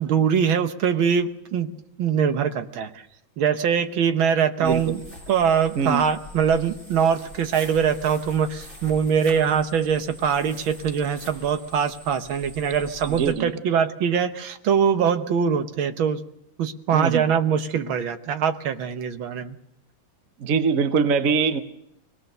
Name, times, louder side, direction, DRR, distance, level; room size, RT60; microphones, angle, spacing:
voice 1, 0.0-1.7 2.0-2.9 3.4-5.0 5.3-16.2 16.6-19.6, right 7 dB, 90° right, 8 dB, 1.9 m, -23 dB
sound 1, 4.6-13.3, left 1 dB, 35° right, 6.2 m, -43 dB
voice 2, 13.2-13.5 16.9-17.2 20.4-21.6, right 5 dB, 50° right, 8 dB, 1.2 m, -22 dB
24.5 x 18.0 x 6.7 m, 0.79 s
omnidirectional pair, 2.1 m